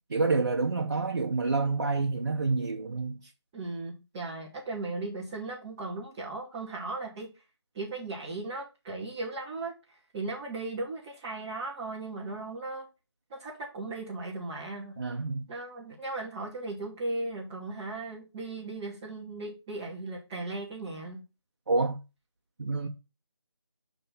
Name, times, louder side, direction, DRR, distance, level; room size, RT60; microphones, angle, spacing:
voice 1, 0.1-3.2 15.0-15.5 21.7-22.0 22.6-22.9, right 3 dB, 45° right, 0.8 m, -28 dB
voice 2, 3.5-7.4 7.7-12.9 13.3-15.0 15.5-21.2, right 2 dB, 5° right, 0.6 m, -37 dB
7.5 x 3.4 x 5.4 m
figure-of-eight pair, 165°, 14 cm